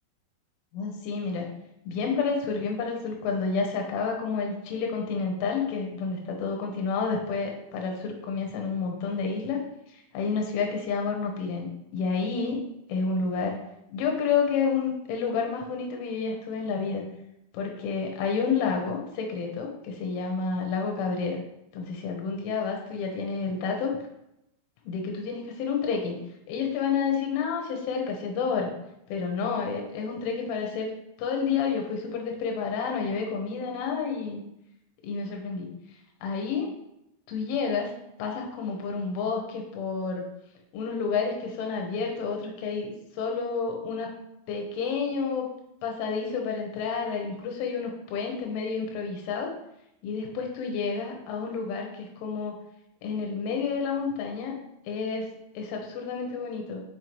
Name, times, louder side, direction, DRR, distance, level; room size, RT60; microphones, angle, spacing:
voice 1, 0.7-1.5 1.8-9.6 9.9-12.6 12.9-13.6 13.9-17.0 17.5-21.4 21.7-24.0 24.8-26.2 26.5-28.7 29.1-30.9 31.2-34.4 35.0-35.7 36.2-36.7 37.3-37.9 38.2-40.3 40.7-44.1 44.5-45.5 45.8-49.5 50.0-52.6 53.0-54.5 54.9-55.3 55.5-56.8, left 5 dB, 85° left, 2 dB, 3.5 m, -29 dB
7.6 x 5.2 x 3.2 m, 0.83 s
omnidirectional pair, 5.7 m